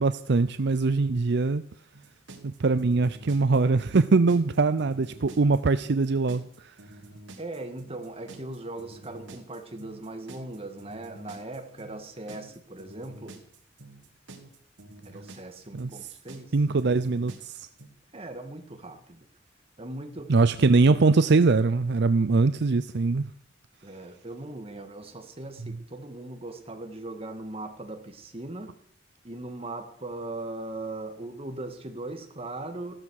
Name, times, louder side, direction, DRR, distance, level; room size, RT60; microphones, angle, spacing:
voice 1, 0.0-1.6 2.4-6.4 15.7-15.9 16.5-17.7 20.3-23.3, right 3 dB, 65° right, 0.6 m, -22 dB
sound 1, 1.9-17.9, right 2 dB, 80° right, 2.5 m, -48 dB
voice 2, 7.4-13.4 15.1-16.5 18.1-19.2 19.8-20.4 23.8-28.7 29.2-32.9, right 2 dB, 30° right, 1.9 m, -39 dB
15.0 x 13.0 x 6.5 m
head